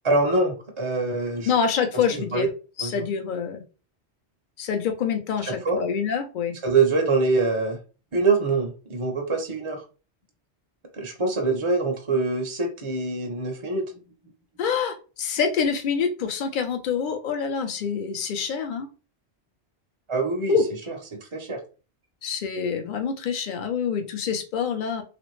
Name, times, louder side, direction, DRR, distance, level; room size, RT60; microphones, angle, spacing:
voice 1, 0.0-1.5 2.1-2.5 2.8-3.0 5.4-5.8 6.6-7.8 8.1-9.8 10.9-14.0 20.1-20.5 20.9-21.6, right 3 dB, 40° right, 3 dB, 0.5 m, -24 dB
voice 2, 1.5-2.5 2.8-3.6 4.6-6.6 14.6-18.9 20.5-20.6 22.2-25.0, left 6 dB, 55° left, 6 dB, 0.7 m, -26 dB
3.1 x 2.5 x 3.1 m, 0.34 s
omnidirectional pair, 1.1 m